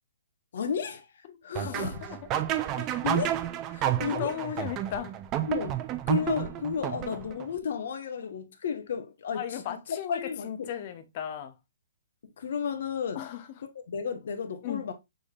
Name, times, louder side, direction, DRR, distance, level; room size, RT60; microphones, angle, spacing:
voice 1, 0.5-1.1 1.4-2.2 2.8-3.4 3.7-4.3 5.4-10.7 12.2-13.3 13.9-14.9, left 6 dB, 55° left, 0.9 m, -33 dB
sound 1, 1.6-7.5, right 12 dB, 20° right, 0.3 m, -30 dB
voice 2, 4.1-5.1 9.3-11.5 13.1-13.4 14.6-14.8, left 9 dB, 30° left, 0.6 m, -36 dB
6.1 x 3.3 x 2.3 m
hypercardioid pair, 170°, 0 cm